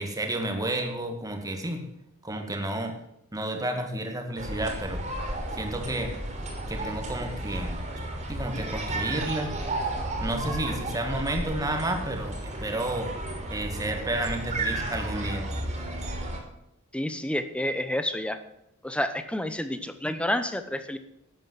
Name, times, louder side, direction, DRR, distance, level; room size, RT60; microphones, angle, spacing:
voice 1, 0.0-1.9 2.2-3.0 3.3-5.0 5.5-6.1 6.7-7.8 8.3-9.5 10.2-13.1 13.5-15.5, right 1 dB, 15° right, 4 dB, 2.0 m, -31 dB
sound 1, 4.4-16.4, right 1 dB, 35° right, 3.4 m, -33 dB
voice 2, 16.9-18.4 18.8-21.0, left 1 dB, 5° left, 10 dB, 0.9 m, -29 dB
12.0 x 9.1 x 7.6 m, 0.80 s
head